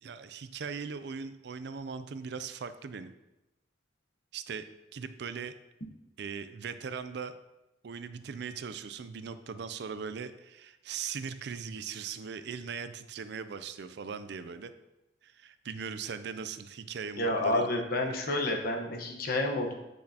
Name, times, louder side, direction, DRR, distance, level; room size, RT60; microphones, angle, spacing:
voice 1, 0.0-3.1 4.3-5.6 6.2-7.3 7.8-14.7 15.2-17.7 18.1-18.2, right 6 dB, 65° right, 11 dB, 0.4 m, -39 dB
voice 2, 17.2-19.7, left 1 dB, 55° left, 2 dB, 1.1 m, -29 dB
8.6 x 6.2 x 2.9 m, 0.96 s
head